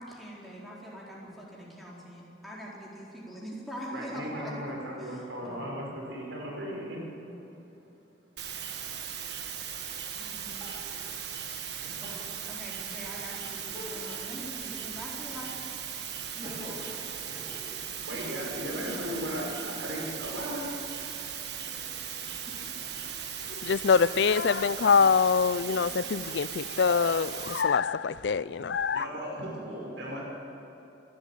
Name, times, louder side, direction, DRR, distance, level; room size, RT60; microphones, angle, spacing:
voice 1, 0.0-4.5 5.0-5.7 9.9-10.7 12.5-15.5, equal, ahead, 4.4 m, -43 dB
voice 2, 3.9-7.5 10.2-10.8 17.3-17.4 18.1-20.7 28.9-30.2, equal, 75° right, 5.7 m, -37 dB
sound 1, 8.4-27.6, right 8 dB, 60° right, 1.5 m, -38 dB
Crying sobbing, 10.6-12.3 12.8-12.9 13.6-14.3 14.6-15.7 16.1-20.1 20.8-22.9 23.5-24.3, left 1 dB, 20° right, 5.4 m, -47 dB
voice 3, 23.5-29.1, left 5 dB, 65° left, 0.4 m, -25 dB
27.0 x 12.0 x 9.0 m
head